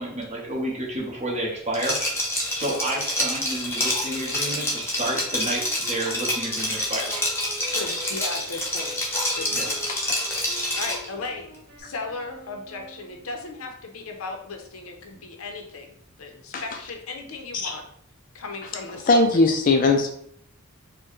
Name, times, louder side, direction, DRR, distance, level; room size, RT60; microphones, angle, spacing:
voice 1, 0.0-2.0 2.5-7.2 9.5-9.6, right 1 dB, 35° right, -4 dB, 1.1 m, -30 dB
Liquid, 1.7-11.1, left 1 dB, 10° left, 0.7 m, -27 dB
Wind instrument woodwind instrument, 4.0-13.5, equal, 75° right, 1.0 m, -45 dB
voice 2, 7.7-9.0 9.3-9.8 10.8-11.5 11.8-17.8 18.3-19.3, left 3 dB, 75° left, 3 dB, 0.6 m, -36 dB
voice 3, 19.1-20.1, left 3 dB, 40° left, 4 dB, 0.4 m, -19 dB
4.4 x 2.2 x 3.0 m, 0.66 s
head